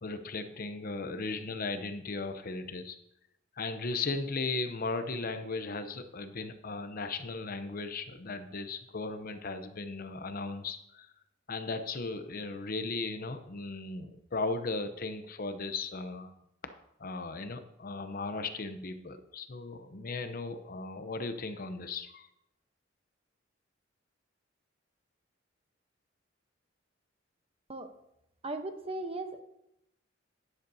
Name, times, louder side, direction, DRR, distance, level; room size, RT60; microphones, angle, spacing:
voice 1, 0.0-3.0 3.6-11.1 11.5-16.3 17.0-22.3, left 3 dB, 50° left, 9 dB, 0.7 m, -36 dB
voice 2, 28.4-29.4, right 2 dB, 30° right, 7 dB, 0.9 m, -37 dB
11.5 x 10.5 x 2.8 m, 0.81 s
head